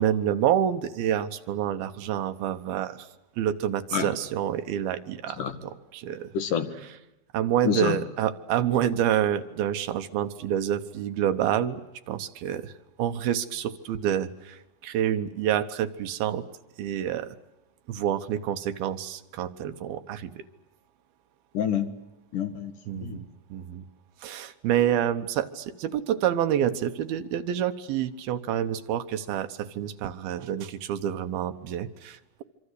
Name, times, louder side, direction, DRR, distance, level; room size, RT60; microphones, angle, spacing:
voice 1, 0.0-3.0 3.4-6.3 7.3-11.8 12.1-12.7 13.0-16.4 16.8-17.4 17.9-20.4 22.9-23.9 24.2-32.4, right 10 dB, 75° right, 9 dB, 3.0 m, -28 dB
voice 2, 6.3-6.7 7.6-8.0 21.5-21.9 22.3-22.7 23.0-23.2, left 8 dB, 60° left, 8 dB, 3.0 m, -27 dB
25.5 x 25.5 x 8.2 m, 0.94 s
omnidirectional pair, 4.5 m